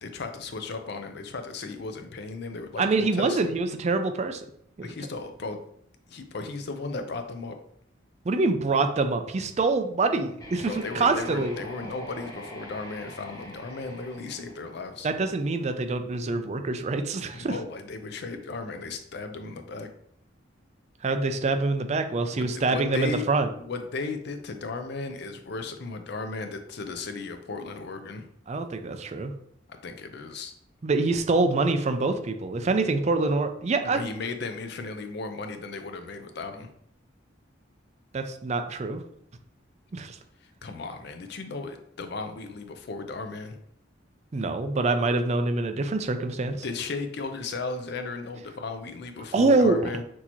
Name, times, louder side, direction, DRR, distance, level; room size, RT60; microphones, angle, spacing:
voice 1, 0.0-3.6 4.8-5.6 6.1-7.6 10.7-15.1 17.3-19.9 22.4-23.3 23.6-28.3 29.7-30.5 33.9-36.7 40.6-43.6 46.6-50.0, left 3 dB, 60° left, 7 dB, 0.5 m, -35 dB
voice 2, 2.8-4.5 4.8-4.9 8.3-11.5 15.0-17.6 21.0-23.5 28.5-29.3 30.8-34.0 38.1-39.0 39.9-40.2 44.3-46.6 49.3-49.8, right 3 dB, 35° right, 8 dB, 0.4 m, -25 dB
sound 1, 10.4-15.3, equal, 20° left, 0.8 m, -44 dB
6.1 x 2.8 x 2.9 m, 0.69 s
head